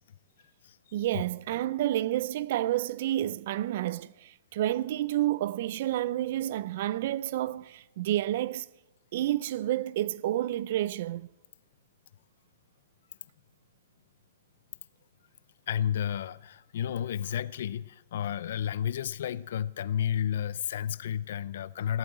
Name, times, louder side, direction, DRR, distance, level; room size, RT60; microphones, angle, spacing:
voice 1, 0.9-8.7 9.1-11.3, right 13 dB, 50° right, 0.4 m, -30 dB
voice 2, 15.7-22.0, left 9 dB, 65° left, 0.5 m, -31 dB
15.5 x 8.6 x 9.3 m
hypercardioid pair, 150°, 0 cm